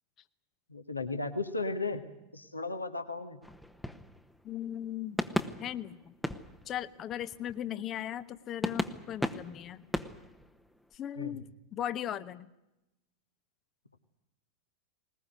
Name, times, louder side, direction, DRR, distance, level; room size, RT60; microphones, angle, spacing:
voice 1, 0.7-2.0 2.3-3.4 11.2-11.4, left 3 dB, 80° left, 6 dB, 1.8 m, -35 dB
sound 1, 3.4-4.9 5.2-7.8 8.2-8.3 8.6-11.0, left 1 dB, 5° left, 1.1 m, -37 dB
voice 2, 4.4-5.2 5.6-6.1 6.7-9.9 10.9-11.4 11.7-12.5, left 11 dB, 30° left, 13 dB, 1.0 m, -37 dB
20.5 x 20.5 x 9.4 m, 0.93 s
figure-of-eight pair, 90°, 0 cm